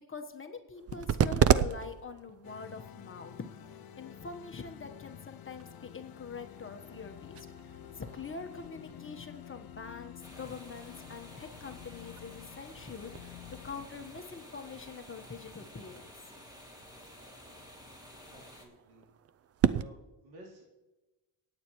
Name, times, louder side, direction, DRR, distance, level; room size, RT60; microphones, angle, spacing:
voice 1, 0.1-3.3 3.7-16.1, left 5 dB, 25° left, 5 dB, 1.3 m, -44 dB
sound 1, 0.7-19.8, right 9 dB, 35° right, 0.4 m, -36 dB
sound 2, 2.4-13.9, left 11 dB, 50° left, 0.7 m, -50 dB
sound 3, 10.2-18.6, equal, 10° right, 2.7 m, -52 dB
voice 2, 18.0-19.0 19.7-20.6, equal, 90° right, -3 dB, 3.8 m, -54 dB
23.5 x 8.9 x 3.1 m, 1.1 s
cardioid pair, 80°, 47 cm